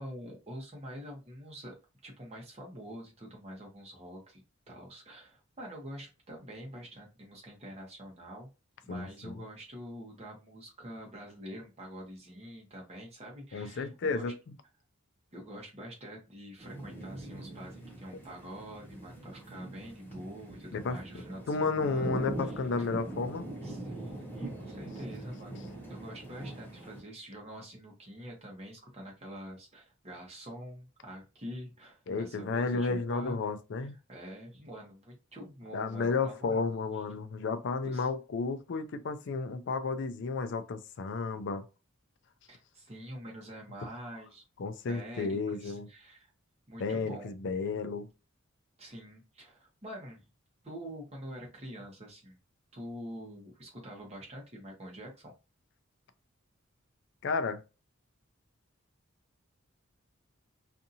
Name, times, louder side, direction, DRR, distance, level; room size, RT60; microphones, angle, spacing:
voice 1, 0.0-1.8 2.0-4.4 4.7-8.5 8.8-14.3 15.3-22.1 23.6-25.6 25.9-33.4 34.1-36.6 37.8-38.1 42.5-44.4 44.9-46.3 46.7-47.3 48.8-50.3 50.6-52.4 52.7-55.3, equal, 30° right, 1.0 m, -46 dB
voice 2, 8.9-9.3 13.5-14.5 20.7-23.5 32.1-34.0 35.7-41.7 44.6-45.9 46.8-48.1 57.2-57.6, left 4 dB, 55° left, 0.4 m, -32 dB
sound 1, 16.6-27.0, right 2 dB, 10° left, 0.6 m, -42 dB
2.7 x 2.5 x 2.7 m
head